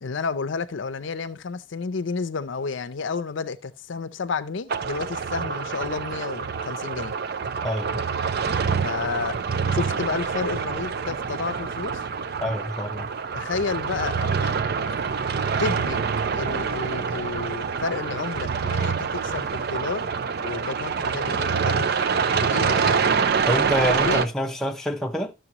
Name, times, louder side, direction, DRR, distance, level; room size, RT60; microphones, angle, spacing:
voice 1, 0.0-7.1 8.8-9.4 9.7-12.0 13.3-14.5 15.6-20.1 20.4-21.9 22.4-23.1 24.0-24.3, left 4 dB, 70° left, 0.6 m, -31 dB
sound 1, 4.7-24.3, right 5 dB, 50° right, 0.4 m, -26 dB
voice 2, 7.6-8.0 12.4-13.1 23.5-25.3, equal, ahead, 0.6 m, -26 dB
12.0 x 6.8 x 2.9 m
head